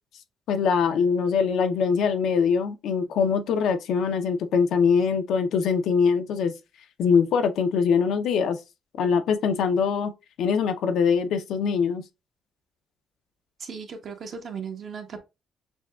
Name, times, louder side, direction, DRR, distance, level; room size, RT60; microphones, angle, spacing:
voice 1, 0.5-6.5 7.0-8.6 9.0-10.1 10.4-12.0, left 6 dB, 80° left, 0.5 m, -23 dB
voice 2, 13.6-15.2, right 6 dB, 55° right, 0.9 m, -36 dB
6.0 x 2.2 x 2.2 m
cardioid pair, 90°, 0 cm